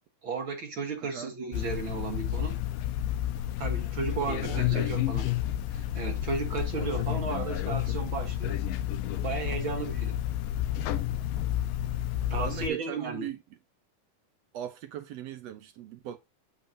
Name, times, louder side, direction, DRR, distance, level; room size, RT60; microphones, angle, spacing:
voice 1, 0.2-2.6 3.6-5.2 5.7-8.6 9.2-10.2 12.3-13.3, right 4 dB, 55° right, 1.5 m, -34 dB
voice 2, 1.0-1.3 4.3-5.3 12.4-13.4 14.5-16.2, right 11 dB, 80° right, 1.4 m, -39 dB
sound 1, 1.5-12.7, left 12 dB, 90° left, 2.3 m, -30 dB
9.0 x 7.3 x 2.6 m
omnidirectional pair, 3.9 m